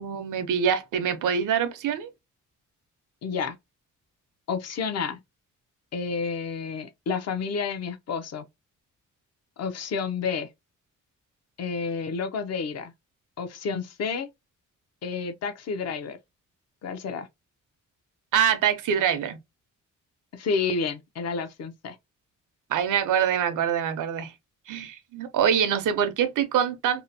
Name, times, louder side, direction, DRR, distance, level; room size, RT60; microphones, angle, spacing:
voice 1, 0.0-2.1 18.3-19.4 22.7-24.3 24.7-27.0, right 8 dB, 90° right, 0.6 m, -25 dB
voice 2, 3.2-3.6 4.5-5.2 5.9-8.5 9.6-10.5 11.6-12.9 13.4-14.3 15.0-16.2 16.8-17.3 20.3-22.0, left 5 dB, 55° left, 0.6 m, -30 dB
2.8 x 2.0 x 2.6 m
cardioid pair, 125°, 30 cm